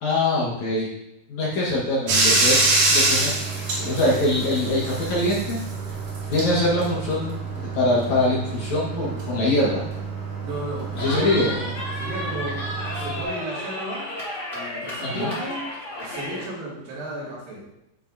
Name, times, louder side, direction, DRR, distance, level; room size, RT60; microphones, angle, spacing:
voice 1, 0.0-0.9 1.3-2.6 2.9-3.3 3.8-5.6 6.3-9.8 10.9-11.5 15.0-15.3, left 2 dB, 75° left, -6 dB, 1.7 m, -23 dB
Bathtub (filling or washing), 2.1-13.2, right 3 dB, 55° right, 3.0 m, -26 dB
voice 2, 10.4-12.6 12.9-14.1 14.5-15.7 16.0-17.6, right 1 dB, 75° right, -8 dB, 4.9 m, -34 dB
Cheering, 11.0-16.5, left 1 dB, 55° left, 0.8 m, -32 dB
13.5 x 5.6 x 2.7 m, 0.84 s
omnidirectional pair, 5.7 m